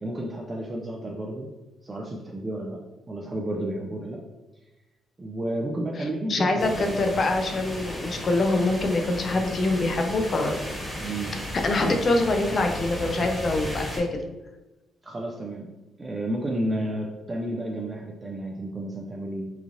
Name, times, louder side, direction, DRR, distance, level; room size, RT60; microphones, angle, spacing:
voice 1, 0.0-1.5 1.8-2.8 3.1-4.2 5.2-7.0 11.0-11.3 11.8-12.0 15.0-15.7 16.0-19.5, right 1 dB, 25° right, 0 dB, 0.4 m, -31 dB
voice 2, 6.3-10.6 11.6-14.1, left 2 dB, 45° left, 4 dB, 0.4 m, -24 dB
sound 1, 6.6-14.0, equal, 10° left, 1.2 m, -35 dB
3.1 x 2.4 x 2.5 m, 1.1 s
cardioid pair, 90°, 0 cm